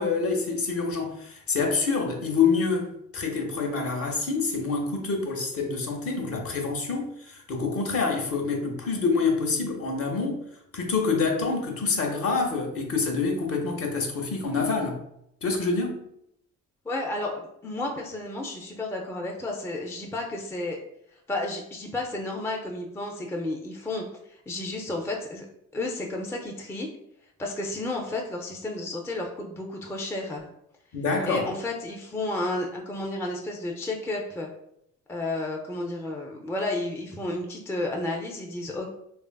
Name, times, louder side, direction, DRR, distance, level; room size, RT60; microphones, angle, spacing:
voice 1, 0.0-2.9 3.1-10.4 10.7-15.0 15.4-16.0 30.9-31.5, left 4 dB, 50° left, 2 dB, 0.7 m, -26 dB
voice 2, 16.8-20.8 21.3-25.5 25.7-26.9 27.4-30.5 31.3-34.5 35.1-38.9, left 2 dB, 10° left, 0 dB, 0.3 m, -32 dB
3.1 x 2.4 x 2.2 m, 0.76 s
cardioid pair, 90°, 30 cm